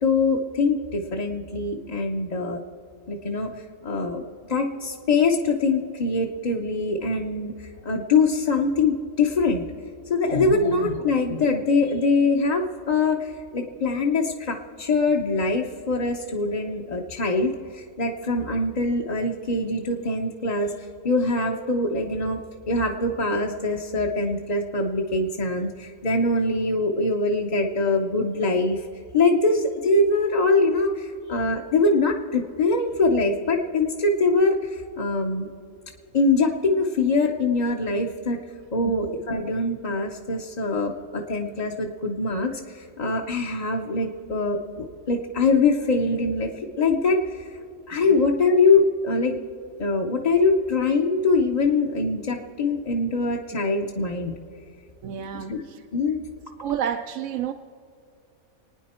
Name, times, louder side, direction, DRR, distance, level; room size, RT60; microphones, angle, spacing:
voice 1, 0.0-2.6 3.1-3.5 3.8-4.2 4.5-9.6 10.1-20.7 21.0-22.4 22.7-28.9 29.1-35.5 36.1-38.4 38.7-49.4 49.8-54.4 55.3-55.6 55.9-56.2, left 3 dB, 35° left, 0 dB, 0.7 m, -23 dB
voice 2, 55.0-55.8 56.6-57.5, right 9 dB, 70° right, 6 dB, 0.9 m, -30 dB
26.0 x 9.6 x 4.3 m, 2.5 s
omnidirectional pair, 1.5 m